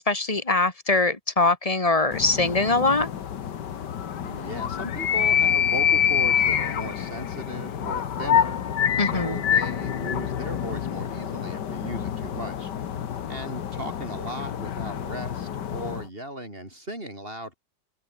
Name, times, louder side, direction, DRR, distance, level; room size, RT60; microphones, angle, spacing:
voice 1, 0.0-3.1 9.0-9.4, left 3 dB, 20° left, 2.4 m, -22 dB
sound 1, 2.1-16.1, left 9 dB, 70° left, 1.9 m, -27 dB
voice 2, 4.2-8.6 9.0-12.7 13.2-17.5, right 1 dB, 30° right, 6.9 m, -37 dB
omnidirectional pair, 1.9 m